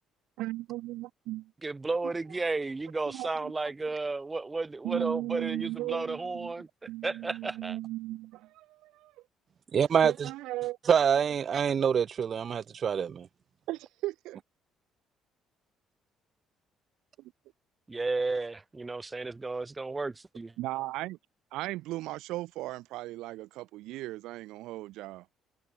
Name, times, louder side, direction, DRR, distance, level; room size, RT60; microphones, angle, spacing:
voice 1, 0.4-1.5 2.0-2.1 3.1-3.7 4.8-6.5 6.9-9.1 10.0-10.8 13.7-14.4 20.6-21.2 21.5-25.3, right 17 dB, 90° right, 2.0 m, -37 dB
voice 2, 1.6-6.7 7.0-7.8 17.9-20.5, right 3 dB, 15° right, 0.9 m, -33 dB
voice 3, 9.7-10.3 10.9-13.3, right 7 dB, 40° right, 0.5 m, -26 dB
cardioid pair, 125°, 0 cm